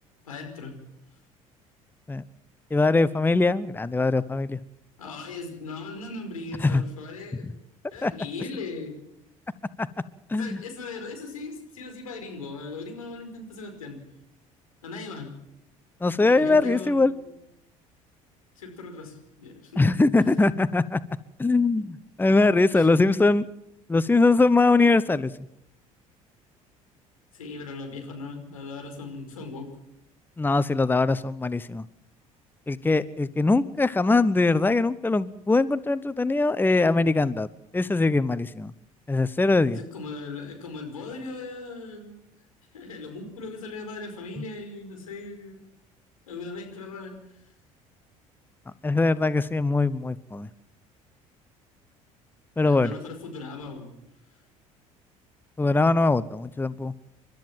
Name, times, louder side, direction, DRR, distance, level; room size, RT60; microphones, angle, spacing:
voice 1, 0.2-0.7 5.0-7.5 7.9-8.9 10.3-14.0 14.8-15.3 16.3-17.2 18.6-20.0 22.7-22.9 27.3-29.7 39.7-42.2 42.7-45.6 46.3-47.4 52.6-53.9, left 3 dB, 85° left, 3 dB, 5.3 m, -38 dB
voice 2, 2.7-4.6 6.6-6.8 7.4-7.5 8.0-8.1 9.8-9.9 10.3-10.6 16.0-17.1 19.8-21.0 21.4-23.4 23.9-25.3 30.4-31.8 32.7-37.5 37.7-38.7 39.1-39.8 48.8-50.5 52.6-52.9 55.6-56.9, left 3 dB, 10° left, 17 dB, 0.9 m, -22 dB
29.5 x 13.0 x 7.5 m, 0.81 s
figure-of-eight pair, 60°, 18 cm